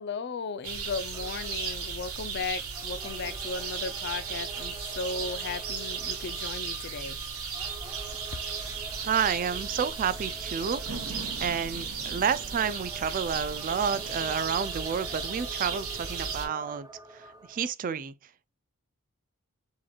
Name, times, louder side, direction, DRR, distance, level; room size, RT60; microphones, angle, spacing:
voice 1, 0.0-7.2, left 4 dB, 50° left, 0.5 m, -36 dB
sound 1, 0.6-16.5, right 6 dB, 75° right, 1.2 m, -35 dB
sound 2, 1.1-17.7, right 2 dB, 15° right, 0.7 m, -47 dB
sound 3, 8.6-16.0, right 3 dB, 60° right, 0.8 m, -47 dB
voice 2, 9.0-10.8 11.4-16.9 17.1-18.1, right 7 dB, 40° right, 0.3 m, -30 dB
6.3 x 3.0 x 2.3 m
head